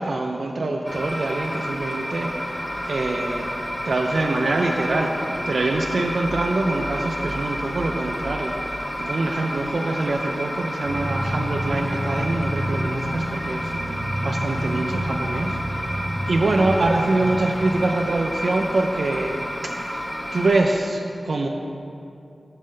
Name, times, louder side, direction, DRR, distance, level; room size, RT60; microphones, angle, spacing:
voice 1, 0.0-15.9 16.3-20.0 20.3-21.5, right 2 dB, 80° right, 1 dB, 0.3 m, -25 dB
sound 1, 0.9-20.6, equal, 25° left, 0.9 m, -30 dB
sound 2, 10.8-17.9, right 1 dB, 60° right, 0.7 m, -29 dB
6.4 x 5.1 x 3.7 m, 2.6 s
cardioid pair, 40°, 0 cm